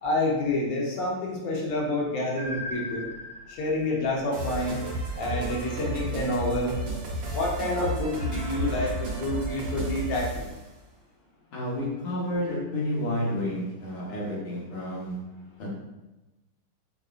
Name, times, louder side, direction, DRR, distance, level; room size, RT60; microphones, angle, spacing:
voice 1, 0.0-3.1 3.5-4.8 5.2-6.8 7.3-10.5, left 1 dB, 60° left, -2 dB, 1.0 m, -28 dB
sound 1, 2.4-5.3, left 2 dB, 30° right, 1.0 m, -39 dB
sound 2, 4.3-10.6, right 1 dB, 65° right, 1.5 m, -32 dB
voice 2, 11.5-15.2 15.6-15.7, left 1 dB, 90° left, -6 dB, 2.2 m, -30 dB
5.5 x 2.5 x 2.4 m, 1.0 s
omnidirectional pair, 2.4 m